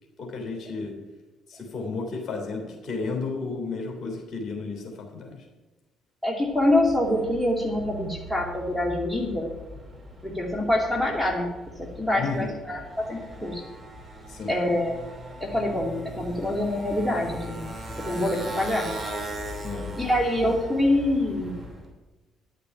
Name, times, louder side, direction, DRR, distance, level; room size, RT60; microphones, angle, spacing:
voice 1, 0.2-0.9 1.5-5.4 12.2-12.5 14.3-14.6 19.6-19.9, left 4 dB, 40° left, 0 dB, 3.6 m, -32 dB
voice 2, 6.2-9.5 10.2-11.5 11.8-13.6 14.5-15.0 15.4-17.7 18.0-18.9 20.0-21.5, left 1 dB, 5° left, -1 dB, 2.4 m, -25 dB
Motorcycle, 6.5-21.9, equal, 25° right, 3.0 m, -39 dB
11.0 x 6.8 x 9.1 m, 1.1 s
figure-of-eight pair, 45°, 0 cm